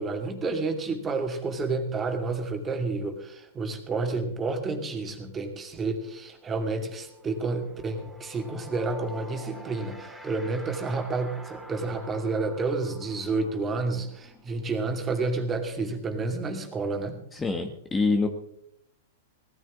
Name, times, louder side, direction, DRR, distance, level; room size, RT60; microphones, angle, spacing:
voice 1, 0.0-17.2, right 3 dB, 20° right, 4 dB, 2.5 m, -30 dB
sound 1, 5.6-5.7 6.0-16.6, right 1 dB, 5° right, 3.9 m, -48 dB
voice 2, 17.3-18.3, left 3 dB, 15° left, 5 dB, 1.2 m, -25 dB
18.0 x 14.0 x 3.7 m, 0.75 s
hypercardioid pair, 120°, 0 cm